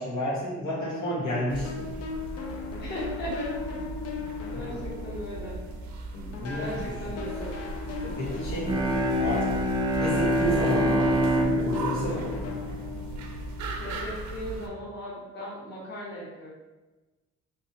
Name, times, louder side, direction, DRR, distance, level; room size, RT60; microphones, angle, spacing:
voice 1, 0.0-1.9 4.5-4.8 6.1-7.3 8.0-9.6 10.0-12.5, equal, 75° left, -7 dB, 1.4 m, -32 dB
sound 1, 0.7-6.0 6.3-14.0, left 5 dB, 55° left, 0.5 m, -39 dB
sound 2, 1.5-14.7, right 2 dB, 70° right, 0.5 m, -38 dB
voice 2, 2.8-3.8 4.5-5.6 6.6-7.6 13.8-16.5, equal, 35° left, -6 dB, 1.0 m, -37 dB
Bowed string instrument, 8.6-13.5, equal, 15° right, 0.4 m, -26 dB
3.1 x 2.9 x 2.8 m, 1.2 s
cardioid pair, 90°, 30 cm